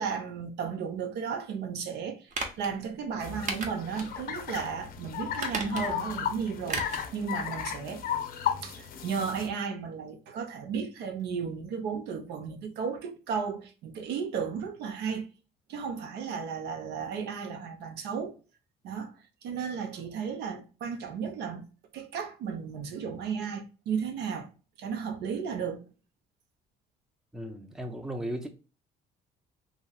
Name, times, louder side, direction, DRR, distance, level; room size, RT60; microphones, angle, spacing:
voice 1, 0.0-2.2 2.6-8.0 8.6-15.3 15.7-18.4 18.8-19.1 19.4-21.6 21.9-24.5 24.8-25.8, right 6 dB, 75° right, 0.7 m, -34 dB
sound 1, 2.3-2.7 3.5-4.1 4.5-4.6 5.3-6.1 6.7-7.1 7.4-7.5, right 3 dB, 45° right, 0.8 m, -35 dB
sound 2, 3.2-9.5, left 8 dB, 60° left, 0.6 m, -35 dB
voice 2, 27.3-28.5, right 1 dB, 5° right, 0.5 m, -36 dB
3.0 x 2.8 x 2.2 m
cardioid pair, 110°, 17 cm